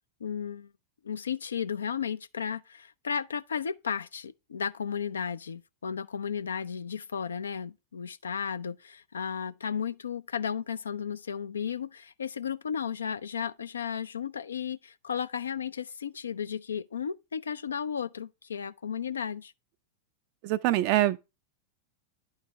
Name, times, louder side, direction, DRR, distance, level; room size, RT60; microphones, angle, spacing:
voice 1, 0.2-0.7 1.0-19.5, left 7 dB, 70° left, 0.4 m, -34 dB
voice 2, 20.4-21.2, right 15 dB, 45° right, 0.4 m, -24 dB
10.5 x 4.6 x 3.1 m
figure-of-eight pair, 90°, 0 cm